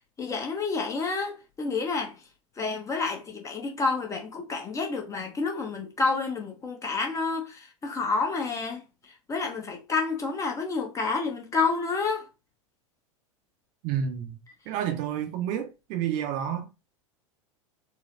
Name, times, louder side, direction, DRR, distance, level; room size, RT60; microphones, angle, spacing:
voice 1, 0.2-2.2 2.6-12.3, left 4 dB, 20° left, 1.0 m, -29 dB
voice 2, 13.8-14.4 14.7-16.7, right 9 dB, 40° right, 0.7 m, -30 dB
4.1 x 2.1 x 2.6 m
figure-of-eight pair, 85°, 17 cm